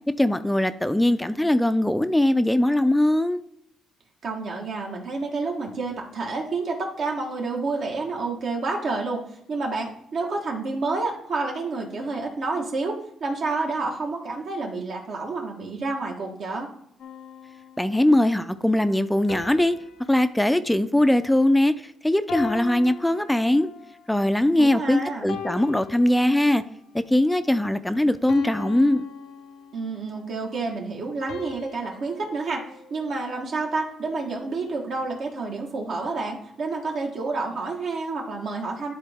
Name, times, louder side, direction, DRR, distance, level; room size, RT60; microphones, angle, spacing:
voice 1, 0.2-3.4 17.8-19.8 20.1-23.7 24.1-26.6 26.9-29.1, left 1 dB, 5° left, 11 dB, 0.4 m, -21 dB
voice 2, 4.2-9.2 9.5-16.7 24.6-25.3 29.7-32.6 32.9-38.9, right 3 dB, 65° right, -1 dB, 1.4 m, -29 dB
sound 1, 17.0-18.3 19.3-21.8 22.3-24.0 24.6-24.8 25.3-26.8 27.3-27.6 28.3-30.2 31.3-33.7, left 6 dB, 75° left, 0.6 m, -40 dB
11.0 x 4.0 x 3.5 m, 0.73 s
cardioid pair, 90°, 0 cm